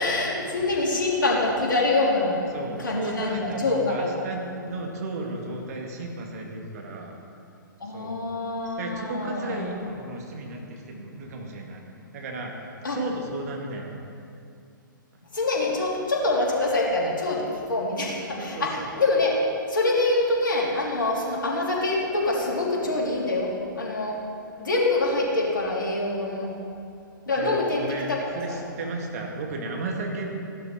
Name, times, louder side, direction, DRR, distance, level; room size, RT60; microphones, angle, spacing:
voice 1, 0.0-2.4 2.8-4.1 7.8-9.6 12.8-13.0 15.3-19.3 19.7-24.2 24.6-26.5 27.3-28.2, left 2 dB, 65° left, -3 dB, 3.4 m, -25 dB
voice 2, 2.5-7.2 7.9-8.2 8.8-11.8 12.1-13.9 18.3-18.9 27.4-28.1 28.3-30.3, right 2 dB, 45° right, 0 dB, 2.3 m, -34 dB
16.0 x 11.5 x 4.4 m, 2.5 s
figure-of-eight pair, 120°, 11 cm